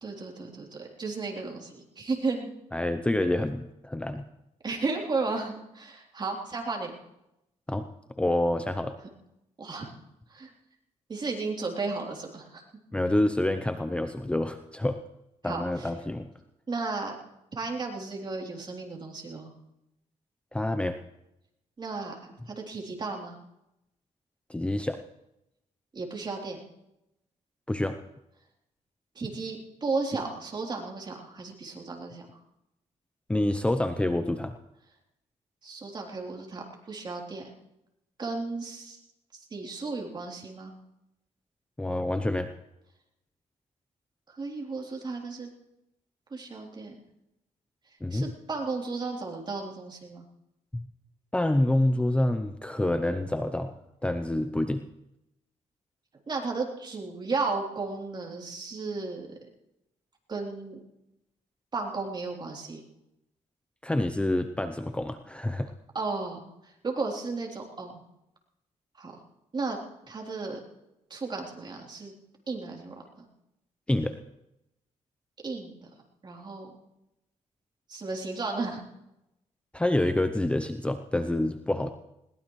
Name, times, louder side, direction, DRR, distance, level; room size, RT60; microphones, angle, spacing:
voice 1, 0.0-2.5 4.6-7.0 9.6-9.9 10.3-10.5 11.1-12.6 15.4-15.9 16.7-17.1 17.5-19.5 21.8-23.4 25.9-26.6 29.1-32.3 35.6-37.5 38.2-39.0 39.5-40.7 44.3-45.5 46.3-46.9 48.1-50.2 56.3-59.3 60.3-60.8 61.7-62.8 65.9-68.0 69.0-69.2 69.5-69.8 70.1-70.6 71.1-72.1 72.5-72.9 75.4-75.9 76.2-76.7 77.9-78.8, right 3 dB, 35° right, 0 dB, 3.4 m, -34 dB
voice 2, 2.7-4.2 7.7-7.9 8.2-8.9 12.9-15.0 15.4-16.3 20.5-21.0 24.5-25.0 27.7-28.0 33.3-34.5 41.8-42.5 48.0-48.3 50.7-50.9 51.3-53.7 54.0-54.8 63.8-65.7 73.9-74.2 79.7-81.9, left 1 dB, 10° left, 9 dB, 0.7 m, -27 dB
21.0 x 18.5 x 3.2 m, 0.88 s
cardioid pair, 90°, 13 cm